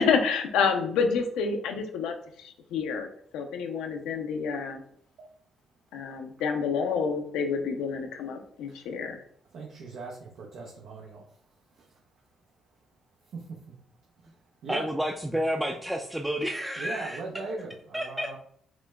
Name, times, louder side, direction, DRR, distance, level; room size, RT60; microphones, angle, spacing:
voice 1, 0.0-3.1 3.3-4.8 5.9-9.2, left 5 dB, 80° left, 5 dB, 0.5 m, -28 dB
voice 2, 9.5-10.1 10.5-11.2 14.6-14.9 16.8-18.4, right 3 dB, 70° right, -2 dB, 0.7 m, -37 dB
voice 3, 14.7-17.2 17.9-18.4, equal, 5° right, 2 dB, 0.4 m, -30 dB
5.9 x 2.1 x 2.3 m, 0.62 s
hypercardioid pair, 55°, 0 cm